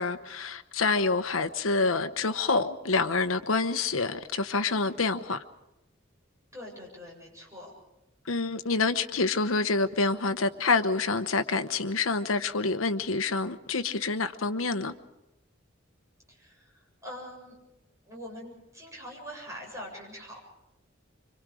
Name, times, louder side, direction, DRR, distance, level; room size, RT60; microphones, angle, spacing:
voice 1, 0.0-5.4 8.3-14.9, left 3 dB, 80° left, 1.0 m, -27 dB
voice 2, 6.5-7.7 16.3-17.6 18.1-20.4, equal, 15° right, 7.8 m, -43 dB
26.5 x 24.5 x 5.0 m
head